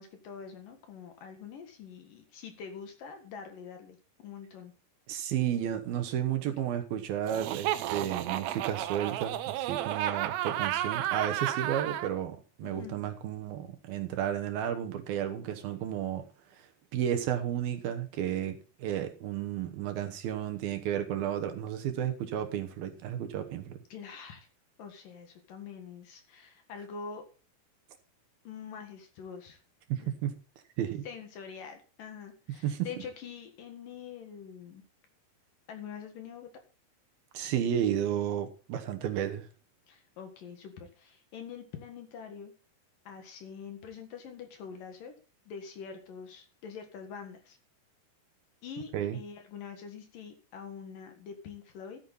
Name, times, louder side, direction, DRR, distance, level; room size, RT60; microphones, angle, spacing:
voice 1, 0.0-4.7 12.6-13.0 23.9-24.5 24.8-27.2 28.4-29.6 30.0-30.1 31.0-34.8 35.7-36.5 39.9-42.5 43.0-45.1 45.5-47.6 48.6-52.0, left 6 dB, 60° left, 3.2 m, -45 dB
voice 2, 5.1-16.3 16.5-16.6 16.9-23.8 29.9-30.3 30.8-31.1 32.6-32.9 37.3-39.5 48.9-49.2, right 10 dB, 70° right, 2.9 m, -32 dB
Laughter, 7.3-12.1, right 13 dB, 85° right, 2.9 m, -32 dB
13.5 x 9.3 x 4.1 m
omnidirectional pair, 4.7 m